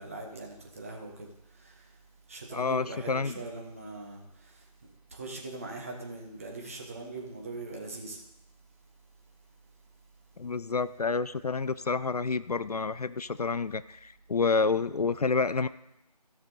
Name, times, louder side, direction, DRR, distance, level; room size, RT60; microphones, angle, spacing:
voice 1, 0.0-2.0 2.3-4.7 5.1-8.2, right 2 dB, 20° right, 0 dB, 1.2 m, -41 dB
voice 2, 2.5-3.3 10.4-15.7, left 4 dB, 65° left, 15 dB, 0.4 m, -29 dB
16.0 x 6.1 x 4.1 m, 0.88 s
figure-of-eight pair, 165°, 21 cm